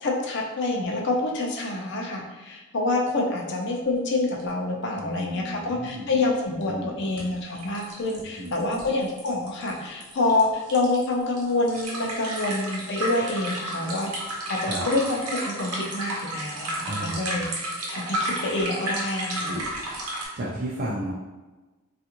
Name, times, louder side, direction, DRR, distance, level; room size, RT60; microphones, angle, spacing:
voice 1, 0.0-14.1 14.5-19.6, left 2 dB, 50° left, 0 dB, 0.5 m, -27 dB
sound 1, 4.4-4.5 4.7-4.8 6.6-6.7 7.2-7.3 7.5-20.2, right 1 dB, 85° right, 0.8 m, -32 dB
voice 2, 5.0-6.1 6.7-7.1 8.2-8.8 14.6-14.9 16.9-17.4 19.3-19.7 20.0-21.1, right 1 dB, 45° right, -6 dB, 0.5 m, -34 dB
3.4 x 2.4 x 2.9 m, 1.2 s
head